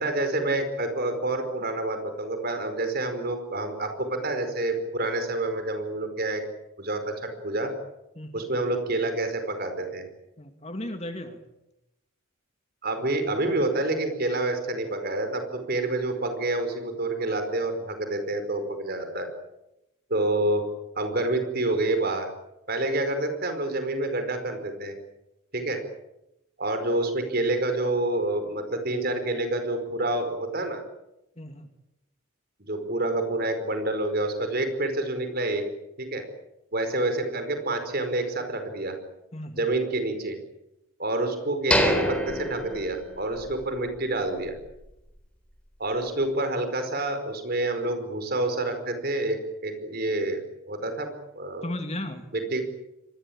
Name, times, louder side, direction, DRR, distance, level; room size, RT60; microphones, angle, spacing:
voice 1, 0.0-6.4 6.8-7.7 8.3-10.0 12.8-19.3 20.1-20.6 20.9-22.3 22.7-24.9 25.5-25.8 26.6-30.8 32.6-35.6 36.0-36.3 36.7-38.9 39.6-40.4 41.0-44.6 45.8-50.4 50.7-51.7 52.3-52.6, right 2 dB, 45° right, 7 dB, 5.0 m, -28 dB
voice 2, 8.2-8.5 10.4-11.4 31.4-31.7 39.3-39.7 51.6-52.2, left 1 dB, 30° left, 7 dB, 2.3 m, -35 dB
sound 1, 41.7-43.6 44.0-44.1 44.6-44.8, left 1 dB, 5° left, 3.8 m, -26 dB
25.5 x 20.5 x 8.8 m, 0.91 s
head